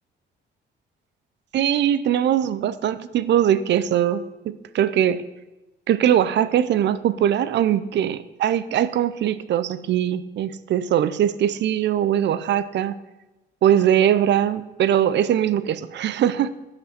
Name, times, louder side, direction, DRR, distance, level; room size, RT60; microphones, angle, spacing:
voice 1, 1.5-5.2 5.9-12.9 13.6-16.5, right 10 dB, 65° right, 16 dB, 0.5 m, -21 dB
11.5 x 5.8 x 4.3 m, 1.0 s
cardioid pair, 90°, 20 cm